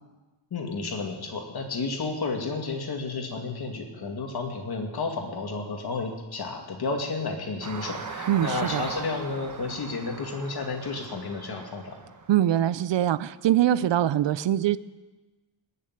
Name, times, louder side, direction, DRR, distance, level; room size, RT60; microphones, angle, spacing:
voice 1, 0.5-12.0, left 3 dB, 50° left, 3 dB, 2.3 m, -32 dB
sound 1, 7.6-12.6, right 5 dB, 40° right, 1.1 m, -39 dB
voice 2, 8.3-8.8 12.3-14.8, right 11 dB, 65° right, 18 dB, 0.6 m, -23 dB
18.5 x 6.8 x 9.4 m, 1.2 s
wide cardioid pair, 165°, 48 cm